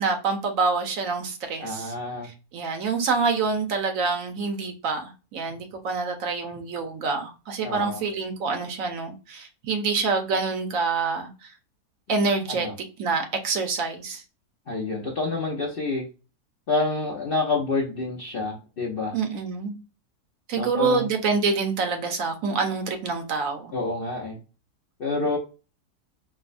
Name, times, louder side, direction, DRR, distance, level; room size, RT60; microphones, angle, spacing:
voice 1, 0.0-1.9 2.2-11.5 12.1-12.7 13.0-14.2 19.1-19.8 20.5-23.7, right 4 dB, 65° right, 1.0 m, -26 dB
voice 2, 1.6-2.3 7.6-8.0 12.5-12.7 14.7-16.0 16.7-19.2 20.6-21.1 23.7-24.4 25.0-25.4, left 3 dB, 65° left, 0.5 m, -28 dB
4.6 x 2.0 x 2.4 m
omnidirectional pair, 1.7 m